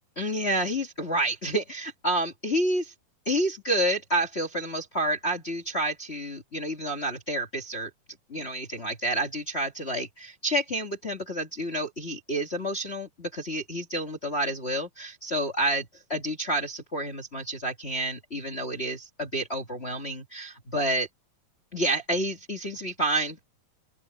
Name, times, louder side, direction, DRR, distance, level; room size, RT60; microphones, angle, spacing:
voice 1, 0.1-2.9 3.2-7.9 8.3-21.1 21.7-23.4, right 1 dB, 65° left, 0.6 m, -29 dB
open air
omnidirectional pair, 4.7 m